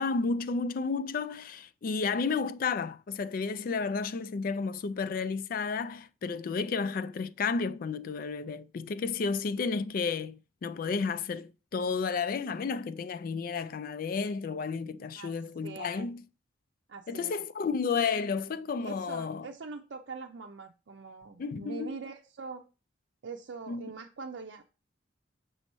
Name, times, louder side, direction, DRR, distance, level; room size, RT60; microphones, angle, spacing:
voice 1, 0.0-16.2 17.1-19.5 21.4-21.9 23.7-23.9, left 5 dB, 50° left, 0.3 m, -32 dB
voice 2, 15.6-16.1 16.9-17.4 18.8-22.6 23.2-24.6, right 4 dB, 80° right, 0.5 m, -43 dB
6.2 x 3.0 x 5.3 m
head